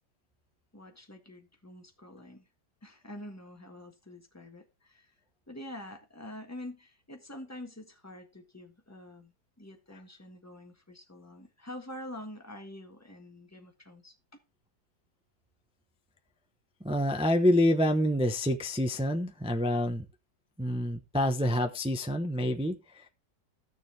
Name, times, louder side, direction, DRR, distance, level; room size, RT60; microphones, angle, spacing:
voice 1, 0.7-2.5 2.8-5.1 5.5-14.1, left 1 dB, 10° left, 1.4 m, -46 dB
voice 2, 16.8-20.0 20.6-23.1, left 1 dB, 10° right, 0.4 m, -27 dB
15.0 x 6.6 x 3.3 m
omnidirectional pair, 1.9 m